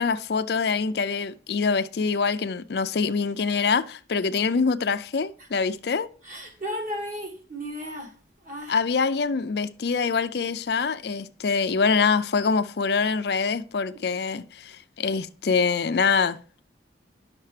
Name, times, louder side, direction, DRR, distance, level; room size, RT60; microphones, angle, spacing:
voice 1, 0.0-6.1 8.7-16.4, left 5 dB, 60° left, 0.4 m, -25 dB
voice 2, 6.2-8.1 8.4-8.8, equal, 45° right, 1.6 m, -35 dB
10.5 x 6.5 x 3.3 m
head